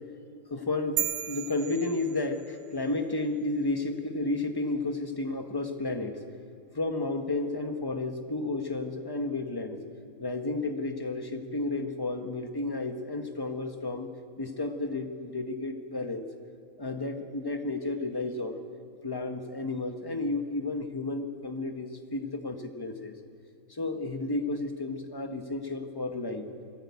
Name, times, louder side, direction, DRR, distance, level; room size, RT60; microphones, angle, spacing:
voice 1, 0.5-6.2 6.7-9.8 10.2-14.1 14.4-16.3 16.8-18.6 19.0-23.1 23.7-26.5, left 2 dB, 15° left, 5 dB, 1.1 m, -32 dB
sound 1, 1.0-2.7, right 11 dB, 80° right, 1.2 m, -34 dB
22.0 x 15.0 x 8.4 m, 2.4 s
omnidirectional pair, 1.5 m